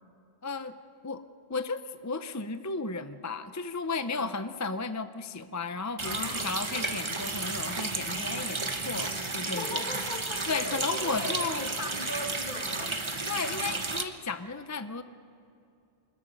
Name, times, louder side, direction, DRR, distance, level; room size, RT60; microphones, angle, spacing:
voice 1, 0.4-0.7 1.0-1.2 1.5-9.9 10.5-11.7 13.3-15.0, left 4 dB, 20° left, 10 dB, 0.4 m, -34 dB
voice 2, 6.0-6.5 9.4-13.0, left 2 dB, 45° left, 4 dB, 1.9 m, -38 dB
Water tap faucet, 6.0-14.0, right 3 dB, 25° right, 1.1 m, -33 dB
26.0 x 21.0 x 5.3 m, 2.6 s
omnidirectional pair, 1.2 m